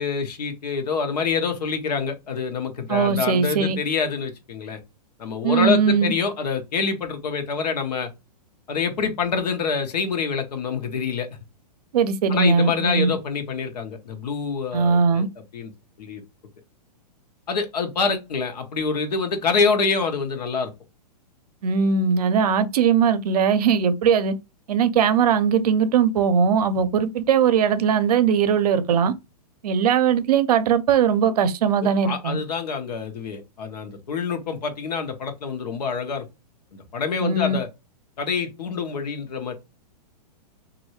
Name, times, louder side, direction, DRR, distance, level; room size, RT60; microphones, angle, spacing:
voice 1, 0.0-4.8 5.2-8.1 8.7-11.3 12.3-15.2 15.5-15.7 16.0-16.2 17.5-20.7 31.8-36.2 36.7-37.7 38.2-39.5, left 5 dB, 75° left, 1.0 m, -26 dB
voice 2, 2.9-3.8 5.4-6.1 11.9-13.1 14.7-15.3 21.6-24.3 24.7-29.1 29.6-32.4 37.2-37.6, right 6 dB, 65° right, 0.6 m, -20 dB
3.1 x 2.6 x 2.9 m
hypercardioid pair, 160°, 21 cm